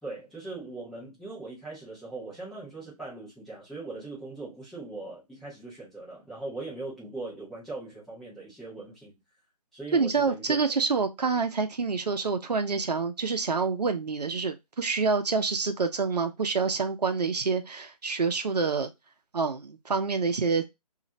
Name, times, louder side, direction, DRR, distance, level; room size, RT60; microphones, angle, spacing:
voice 1, 0.0-9.1 9.7-10.6, right 3 dB, ahead, 0.5 m, -40 dB
voice 2, 9.9-18.9 19.3-20.7, right 4 dB, 85° right, 0.6 m, -27 dB
2.4 x 2.0 x 3.8 m
figure-of-eight pair, 150°, 20 cm